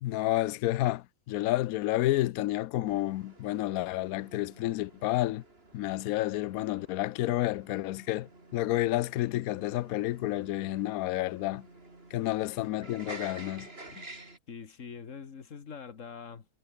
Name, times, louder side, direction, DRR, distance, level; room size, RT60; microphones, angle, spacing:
voice 1, 0.0-5.4 5.7-11.7 12.1-13.7, left 16 dB, 70° left, 1.0 m, -30 dB
sound 1, 2.9-14.4, right 2 dB, 40° right, 4.2 m, -50 dB
voice 2, 14.5-16.5, left 6 dB, 55° left, 1.9 m, -44 dB
omnidirectional pair, 1.7 m